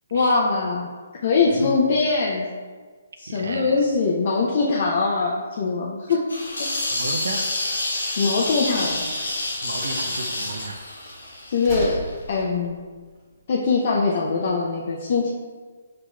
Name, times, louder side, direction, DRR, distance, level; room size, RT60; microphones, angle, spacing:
voice 1, 0.1-0.9 1.2-2.5 3.2-6.2 6.6-6.7 8.2-9.0 11.0-11.1 11.5-12.0 12.3-12.8 13.5-15.3, left 4 dB, 50° left, -3 dB, 0.5 m, -22 dB
voice 2, 3.3-3.8 6.1-6.2 6.8-7.5 9.6-10.8, right 3 dB, 70° right, 5 dB, 0.5 m, -33 dB
sound 1, 6.3-12.1, left 2 dB, 90° left, 0.8 m, -28 dB
sound 2, 7.8-14.0, right 1 dB, 20° right, 1.4 m, -39 dB
7.1 x 2.8 x 2.3 m, 1.5 s
figure-of-eight pair, 140°, 0 cm